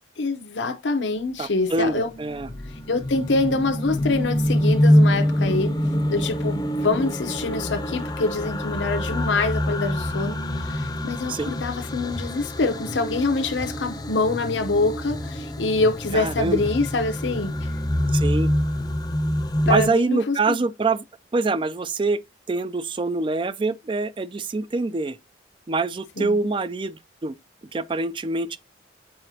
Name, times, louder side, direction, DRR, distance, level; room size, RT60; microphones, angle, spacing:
voice 1, 0.2-2.1 2.7-5.8 6.1-17.7 19.7-20.6 26.2-26.4, left 3 dB, 80° left, 0.8 m, -25 dB
voice 2, 1.4-2.5 11.3-11.5 16.1-16.6 18.1-18.5 19.7-21.0 21.3-22.2 22.5-25.2 25.7-27.3 27.7-28.6, right 3 dB, 25° right, 0.4 m, -25 dB
sound 1, 2.1-19.9, equal, 20° left, 0.6 m, -25 dB
7.7 x 4.9 x 2.7 m
head